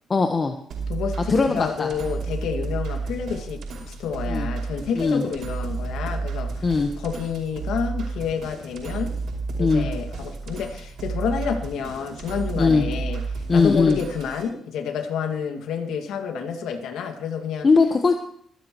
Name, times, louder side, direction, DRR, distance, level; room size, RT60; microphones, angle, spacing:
voice 1, 0.1-0.5 1.3-1.9 4.3-4.5 5.0-5.2 6.6-6.9 9.6-9.9 12.5-12.9 13.5-14.0 17.6-18.1, left 4 dB, 35° left, 4 dB, 1.2 m, -19 dB
sound 1, 0.7-14.4, right 4 dB, 75° right, 5.8 m, -31 dB
voice 2, 0.9-3.6 3.9-9.1 9.6-13.2 13.5-17.7, left 6 dB, 80° left, 5 dB, 2.2 m, -29 dB
25.0 x 9.9 x 3.1 m, 0.63 s
cardioid pair, 90°, 0 cm